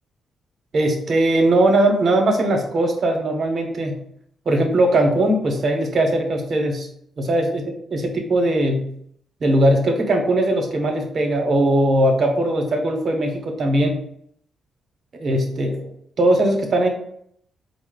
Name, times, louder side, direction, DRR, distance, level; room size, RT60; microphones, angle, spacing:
voice 1, 0.7-3.9 4.5-6.9 7.2-7.6 7.9-8.8 9.4-13.9 15.1-15.9 16.2-16.9, right 1 dB, 55° right, 3 dB, 0.9 m, -19 dB
4.2 x 2.1 x 3.8 m, 0.68 s
cardioid pair, 65°, 0 cm